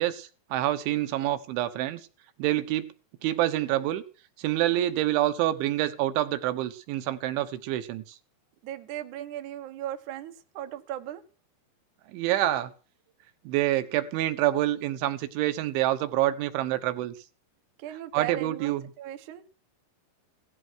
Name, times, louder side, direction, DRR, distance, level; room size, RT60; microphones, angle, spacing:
voice 1, 0.0-2.0 2.4-2.9 3.2-4.0 4.4-8.2 12.1-12.7 13.5-17.2 17.9-18.9, right 14 dB, 80° right, 10 dB, 3.6 m, -27 dB
voice 2, 8.6-11.2 17.8-19.4, right 12 dB, 65° right, 7 dB, 2.1 m, -37 dB
17.0 x 13.0 x 6.3 m, 0.36 s
omnidirectional pair, 5.4 m